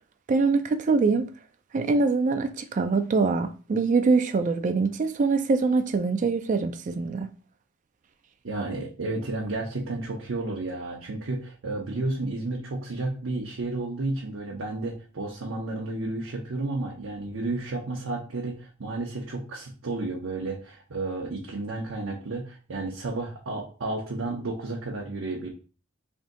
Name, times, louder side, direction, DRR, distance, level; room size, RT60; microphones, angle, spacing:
voice 1, 0.3-1.3 1.7-7.3, right 4 dB, 40° right, 0.3 m, -24 dB
voice 2, 8.4-25.5, right 2 dB, 80° right, 0.7 m, -32 dB
3.5 x 2.7 x 3.7 m
head